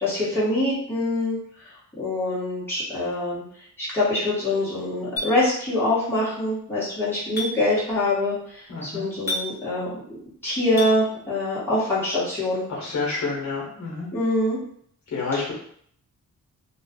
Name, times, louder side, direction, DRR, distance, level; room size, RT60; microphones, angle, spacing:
voice 1, 0.0-1.4 1.6-3.4 3.8-10.0 10.4-12.7 14.1-14.6 15.3-15.5, left 1 dB, 5° left, -10 dB, 1.2 m, -24 dB
Chink clink, 5.2-5.3 7.4-7.5 9.3-9.5 10.8-10.9, left 1 dB, 30° left, 1.0 m, -27 dB
voice 2, 8.7-9.0 12.7-14.1 15.1-15.5, left 4 dB, 65° left, -3 dB, 1.0 m, -28 dB
2.3 x 2.3 x 3.6 m, 0.63 s
wide cardioid pair, 175°, 31 cm